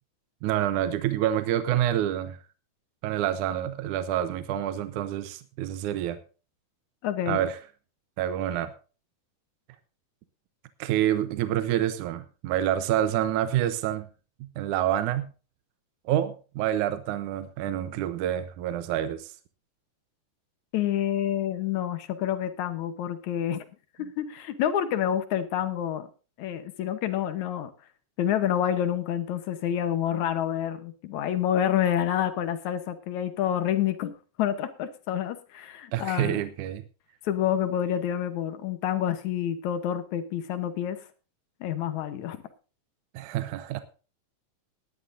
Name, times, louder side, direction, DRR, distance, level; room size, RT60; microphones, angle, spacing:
voice 1, 0.4-2.4 3.0-6.2 7.3-7.6 8.2-8.7 10.8-14.1 14.6-15.3 16.1-19.3 35.9-36.8 43.1-43.8, right 11 dB, 75° right, 12 dB, 2.2 m, -27 dB
voice 2, 7.0-7.4 20.7-23.7 24.0-26.1 26.4-27.7 28.2-36.4 37.2-41.0 41.6-42.4, left 10 dB, 70° left, 10 dB, 2.2 m, -28 dB
18.5 x 11.5 x 2.6 m, 0.34 s
omnidirectional pair, 3.8 m